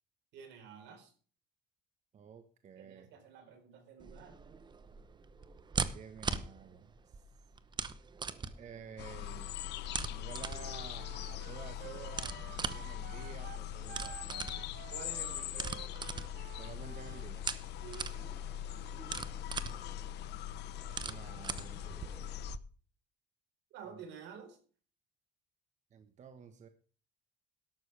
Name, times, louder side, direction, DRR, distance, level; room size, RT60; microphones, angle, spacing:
voice 1, 0.3-1.1 2.8-4.4 14.9-15.7 17.8-18.3 23.7-24.6, right 7 dB, 75° right, 7 dB, 4.3 m, -50 dB
voice 2, 2.1-3.1 5.9-7.2 8.6-9.6 10.1-14.7 16.5-17.5 20.8-22.3 23.8-24.0 25.9-26.7, right 7 dB, 40° right, 8 dB, 1.3 m, -52 dB
sound 1, 4.0-22.6, right 5 dB, 25° right, 0.9 m, -42 dB
sound 2, 9.0-22.6, left 11 dB, 65° left, 0.8 m, -42 dB
Wind instrument woodwind instrument, 10.5-17.3, right 12 dB, 55° right, 1.0 m, -52 dB
12.5 x 12.0 x 3.4 m, 0.40 s
cardioid pair, 135°, 18 cm